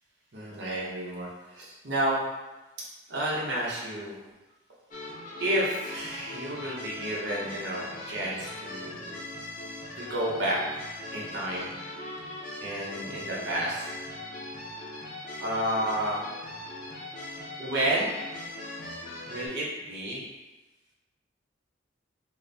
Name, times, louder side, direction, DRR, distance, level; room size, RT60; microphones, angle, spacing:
voice 1, 0.3-2.2 3.1-4.2 5.4-9.2 10.0-10.6 11.1-11.7 12.6-13.9 15.4-16.2 17.6-18.3 19.3-20.2, right 1 dB, 65° right, -6 dB, 0.9 m, -31 dB
sound 1, 4.9-19.5, left 1 dB, 40° left, 0.6 m, -40 dB
4.1 x 2.3 x 3.4 m, 1.1 s
head